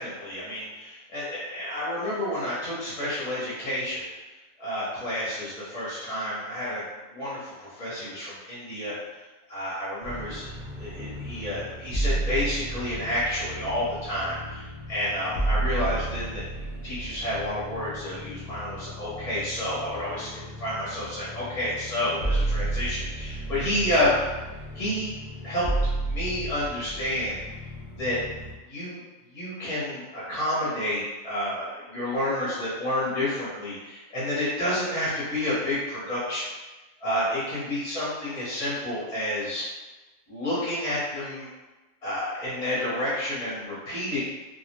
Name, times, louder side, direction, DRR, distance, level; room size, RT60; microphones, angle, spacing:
voice 1, 0.0-4.1 4.6-6.8 7.1-8.9 9.5-16.4 16.8-24.1 24.7-25.1 25.4-25.7 26.1-27.4 28.0-28.2 28.7-29.0 29.3-36.5 37.0-39.7 40.3-41.5 42.0-44.2, left 1 dB, 35° left, -9 dB, 0.7 m, -30 dB
sound 1, 10.0-28.5, right 2 dB, 50° right, 0.6 m, -33 dB
2.3 x 2.0 x 2.8 m, 1.2 s
omnidirectional pair, 1.3 m